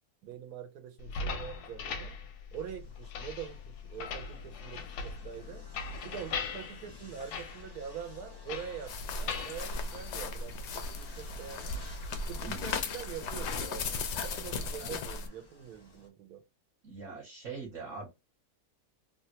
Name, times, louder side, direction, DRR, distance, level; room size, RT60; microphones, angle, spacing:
voice 1, 0.2-2.1 2.5-5.6 6.0-11.8 12.1-16.4, right 9 dB, 80° right, 1.3 m, -44 dB
sound 1, 1.0-10.7, left 5 dB, 85° left, 1.2 m, -41 dB
sound 2, 2.5-16.1, left 2 dB, 40° left, 0.3 m, -56 dB
sound 3, 8.9-15.3, left 4 dB, 70° left, 0.7 m, -36 dB
voice 2, 16.8-18.1, right 4 dB, 55° right, 1.3 m, -42 dB
3.1 x 2.2 x 2.8 m
omnidirectional pair, 1.6 m